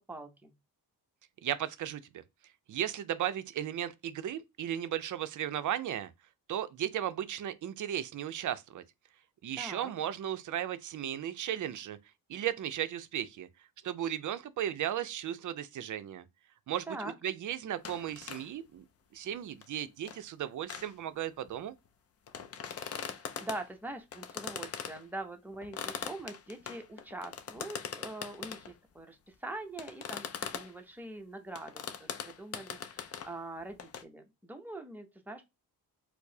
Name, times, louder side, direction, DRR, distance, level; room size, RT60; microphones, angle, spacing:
voice 1, 0.1-0.5 9.6-9.9 16.9-17.1 23.0-30.3 30.5-35.4, right 2 dB, 5° right, 0.6 m, -43 dB
voice 2, 1.4-2.2 2.7-6.1 6.5-8.8 9.4-12.0 12.3-13.5 13.8-16.2 16.7-16.9 17.2-18.9 19.1-21.8, right 10 dB, 50° right, 0.5 m, -35 dB
sound 1, 17.8-18.5 18.8-18.9 19.2-19.3 19.6-20.3 20.7-20.9 21.5-21.6 22.3-23.7 24.1-25.0 25.5-28.7 29.8-30.7 31.6-33.4 33.8-34.0, left 7 dB, 40° left, 0.4 m, -41 dB
4.6 x 2.0 x 2.7 m
cardioid pair, 125°, 39 cm